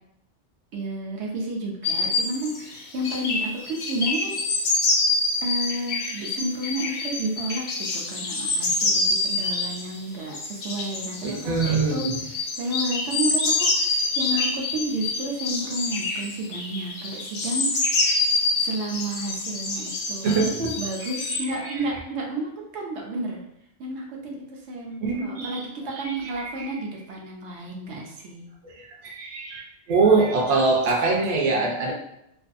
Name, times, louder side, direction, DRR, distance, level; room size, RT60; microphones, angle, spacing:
voice 1, 0.7-4.5 5.4-18.0 18.6-23.4 23.8-28.5, right 1 dB, 75° right, -1 dB, 0.9 m, -31 dB
sound 1, 1.8-21.4, left 3 dB, 60° left, 0.7 m, -26 dB
voice 2, 11.2-12.2 20.2-20.8 21.3-21.8 25.0-25.6 25.9-26.7 28.6-29.6 29.9-31.9, right 4 dB, 50° right, -1 dB, 0.5 m, -24 dB
2.5 x 2.3 x 2.5 m, 0.81 s
omnidirectional pair, 1.2 m